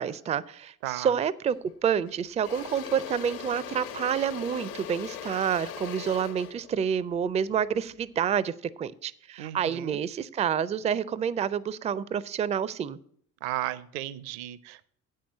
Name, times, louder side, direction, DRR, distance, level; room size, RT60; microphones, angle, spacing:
voice 1, 0.0-1.6 1.8-13.0, right 8 dB, 15° right, 19 dB, 0.4 m, -28 dB
Engine / Drill, 1.5-1.7 2.1-8.2, left 9 dB, 70° left, 1.1 m, -40 dB
voice 2, 9.4-10.0 13.4-14.9, right 13 dB, 60° right, 18 dB, 0.6 m, -35 dB
8.6 x 5.6 x 7.4 m, 0.62 s
figure-of-eight pair, 55°, 43 cm